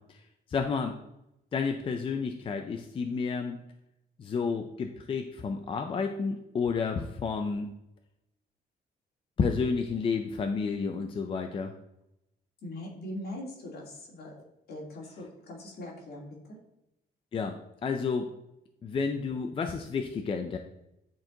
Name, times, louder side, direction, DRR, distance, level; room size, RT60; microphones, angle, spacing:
voice 1, 0.5-1.0 1.5-3.6 4.2-7.7 9.4-11.7 17.3-18.3 18.8-20.6, left 5 dB, 30° left, 5 dB, 0.5 m, -31 dB
voice 2, 12.6-14.3 14.7-16.6, left 1 dB, 65° left, -2 dB, 2.4 m, -41 dB
10.5 x 4.5 x 3.8 m, 0.84 s
cardioid pair, 180°, 17 cm